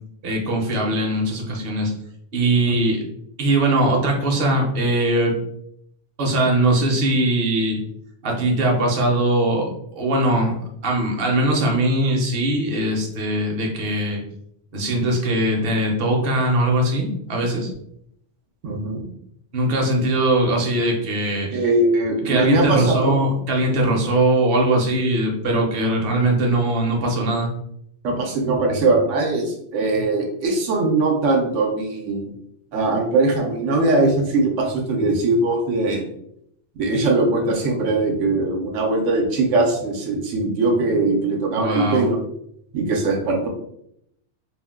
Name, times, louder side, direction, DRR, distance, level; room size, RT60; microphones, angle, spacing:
voice 1, 0.2-1.9 2.3-3.0 3.4-5.3 6.2-7.8 8.2-9.7 10.0-10.5 10.8-14.2 14.7-17.7 19.5-21.6 22.2-27.5 41.6-42.1, right 1 dB, 55° right, 0 dB, 0.8 m, -20 dB
voice 2, 18.6-19.0 21.5-23.1 28.0-32.2 32.7-36.1 36.8-42.2 42.7-43.5, right 2 dB, 85° right, 1 dB, 1.0 m, -21 dB
2.5 x 2.1 x 3.4 m, 0.74 s
omnidirectional pair, 1.3 m